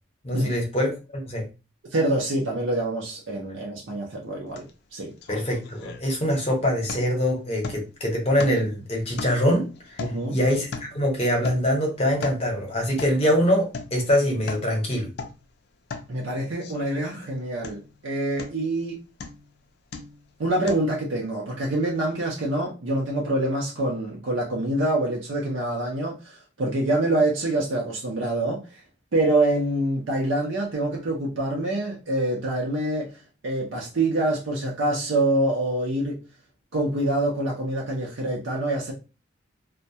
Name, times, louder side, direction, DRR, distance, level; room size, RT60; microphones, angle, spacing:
voice 1, 0.2-1.5 5.3-9.6 10.3-15.1, equal, 30° left, 0.7 m, -24 dB
voice 2, 1.9-4.7 4.9-5.1 10.0-10.4 16.1-19.0 20.4-28.8 29.1-33.2 33.4-36.2 36.7-38.9, right 1 dB, 75° right, 0.6 m, -26 dB
sound 1, 4.6-4.7 5.0-6.4 6.9-7.2 7.6-8.0 8.4-8.8 9.2-11.1 11.4-11.8 12.1-12.5 13.0-13.2 13.7-14.0 14.3-14.7 15.1-15.4 15.9-16.1 16.6-17.3 17.6-18.0 18.4-18.7 19.2-19.5 19.9-20.3 20.7-20.8, left 4 dB, 55° left, 0.4 m, -38 dB
2.2 x 2.1 x 2.7 m
head